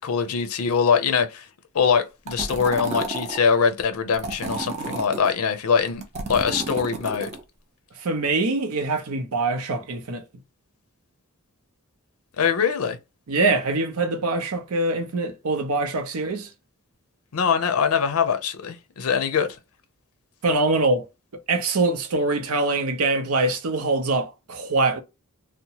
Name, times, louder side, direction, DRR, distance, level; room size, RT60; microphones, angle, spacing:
voice 1, 0.0-1.5 1.7-6.0 6.3-7.3 12.4-13.0 17.3-19.5, left 6 dB, 80° left, 0.5 m, -22 dB
sound 1, 2.3-3.4 4.1-5.3 5.9-7.4, right 3 dB, 30° right, 0.6 m, -31 dB
voice 2, 8.0-10.2 13.3-16.5 20.4-21.0 21.5-25.0, right 3 dB, 90° right, 0.6 m, -23 dB
2.8 x 2.1 x 2.8 m
head